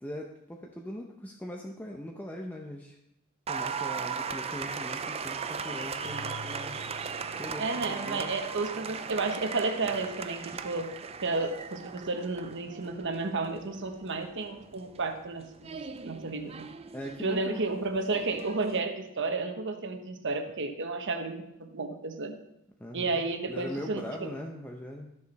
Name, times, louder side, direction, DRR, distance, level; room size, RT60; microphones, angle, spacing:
voice 1, 0.0-3.0 3.5-6.8 7.3-8.4 16.9-17.6 22.8-25.1, equal, 10° left, 0 dB, 0.7 m, -41 dB
Applause, 3.5-18.8, right 6 dB, 30° right, 0.4 m, -38 dB
Keyboard (musical), 6.0-8.3, left 4 dB, 65° left, 1.3 m, -48 dB
voice 2, 7.6-15.8 16.0-16.7 17.2-22.4 22.9-24.3, right 3 dB, 60° right, 6 dB, 1.1 m, -32 dB
13.0 x 6.7 x 4.1 m, 0.82 s
head